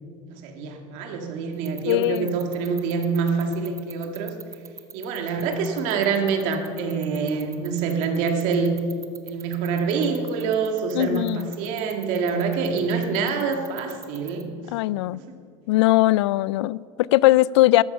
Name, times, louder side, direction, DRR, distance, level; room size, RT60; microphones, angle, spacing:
voice 1, 0.3-4.3 4.9-8.8 9.2-14.5 15.1-15.4, right 5 dB, 60° right, 4 dB, 2.2 m, -26 dB
sound 1, 1.5-14.4, right 6 dB, 25° right, 1.1 m, -40 dB
voice 2, 1.9-2.3 10.9-11.5 14.7-15.2 15.7-17.8, left 17 dB, 80° left, 21 dB, 0.4 m, -20 dB
13.0 x 13.0 x 5.5 m, 2.2 s
supercardioid pair, 105°, 14 cm